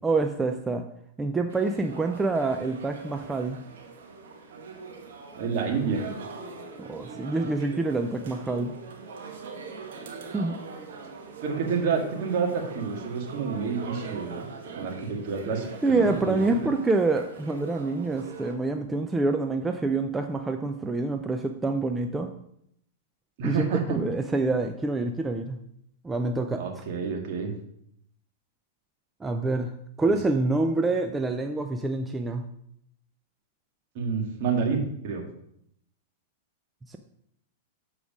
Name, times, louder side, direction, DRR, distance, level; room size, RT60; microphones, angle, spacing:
voice 1, 0.0-0.8 1.2-3.6 6.8-8.7 10.3-10.6 15.8-22.3 23.4-25.6 26.0-26.6 29.2-29.7 30.0-32.4 36.9-37.0, right 3 dB, 15° right, 5 dB, 0.5 m, -26 dB
sound 1, 1.5-18.5, right 4 dB, 70° right, 1.4 m, -42 dB
voice 2, 5.4-6.1 11.4-14.5 14.8-16.7 23.4-24.0 26.6-27.5 30.1-30.2 34.0-35.3, right 5 dB, 55° right, 1 dB, 1.8 m, -29 dB
7.1 x 4.9 x 5.0 m, 0.72 s
hypercardioid pair, 105°, 0 cm